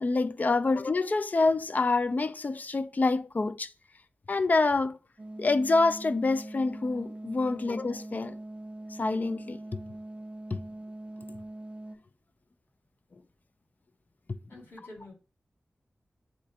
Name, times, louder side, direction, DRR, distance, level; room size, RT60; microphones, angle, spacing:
voice 1, 0.0-3.7 4.3-5.0 5.4-8.4 9.0-9.8 10.5-10.6, left 3 dB, 40° left, 0.3 m, -27 dB
sound 1, 5.2-12.0, right 1 dB, 30° right, 0.4 m, -42 dB
voice 2, 14.5-15.1, left 1 dB, 90° left, 2.6 m, -47 dB
7.4 x 2.7 x 2.4 m
wide cardioid pair, 90°, 4 cm